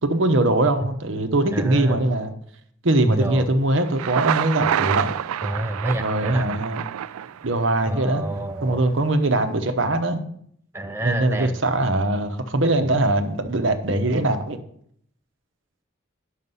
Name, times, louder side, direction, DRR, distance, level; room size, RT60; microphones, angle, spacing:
voice 1, 0.0-2.3 2.8-5.1 6.0-6.8 7.4-8.2 8.6-10.2 11.0-14.6, right 2 dB, 60° right, 7 dB, 1.0 m, -21 dB
voice 2, 1.5-2.0 3.1-3.4 5.4-6.6 7.9-8.8 10.7-11.6, right 1 dB, 10° right, 6 dB, 0.4 m, -28 dB
Thunder, 3.8-7.8, right 9 dB, 90° right, 0.3 m, -27 dB
9.5 x 6.6 x 5.5 m, 0.67 s
head